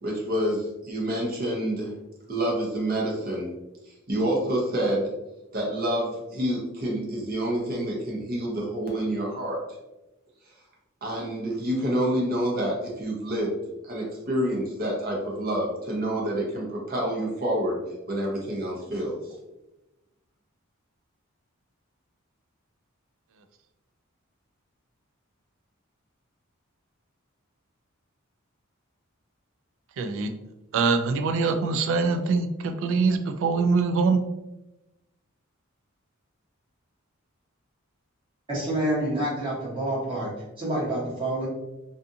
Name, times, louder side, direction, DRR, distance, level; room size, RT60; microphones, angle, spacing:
voice 1, 0.0-1.9 2.3-3.5 4.1-5.1 5.5-9.6 11.0-13.5 13.8-17.8 18.1-19.2, right 1 dB, 45° right, -2 dB, 0.7 m, -28 dB
voice 2, 30.0-30.3 30.7-34.2, right 4 dB, 65° right, 7 dB, 0.3 m, -23 dB
voice 3, 38.5-40.3 40.6-41.5, right 1 dB, 25° right, -7 dB, 1.0 m, -27 dB
2.5 x 2.4 x 2.6 m, 0.97 s
head